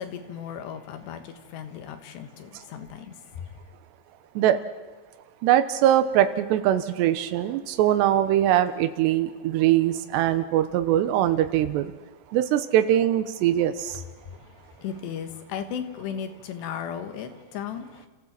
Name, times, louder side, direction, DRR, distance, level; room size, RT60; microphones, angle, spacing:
voice 1, 0.0-3.5 14.3-14.4 14.8-18.1, left 8 dB, 80° left, 3.7 m, -36 dB
voice 2, 5.4-11.9 12.3-13.9, right 12 dB, 90° right, 3.1 m, -22 dB
29.5 x 15.0 x 7.5 m
omnidirectional pair, 4.9 m